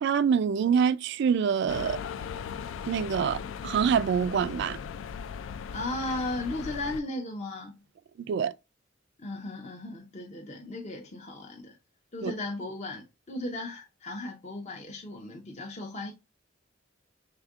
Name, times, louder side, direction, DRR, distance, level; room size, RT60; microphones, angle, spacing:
voice 1, 0.0-2.0 2.9-4.8 8.2-8.5 12.2-12.3, right 7 dB, 60° right, 0.3 m, -25 dB
sound 1, 1.7-7.0, left 7 dB, 75° left, 0.3 m, -38 dB
voice 2, 5.7-7.8 9.2-11.8 12.1-16.1, left 2 dB, 35° left, 0.6 m, -36 dB
4.9 x 3.5 x 2.4 m
head